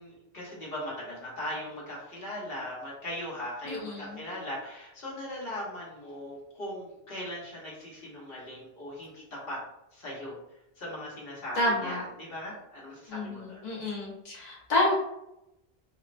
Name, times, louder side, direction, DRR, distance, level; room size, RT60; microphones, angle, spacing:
voice 1, 0.0-9.6 9.9-10.3 10.8-13.6, left 1 dB, 70° left, -5 dB, 1.2 m, -39 dB
voice 2, 3.7-4.2 11.6-12.0 13.1-14.9, left 1 dB, 45° left, -5 dB, 0.9 m, -29 dB
4.1 x 2.0 x 2.4 m, 0.86 s
omnidirectional pair, 1.0 m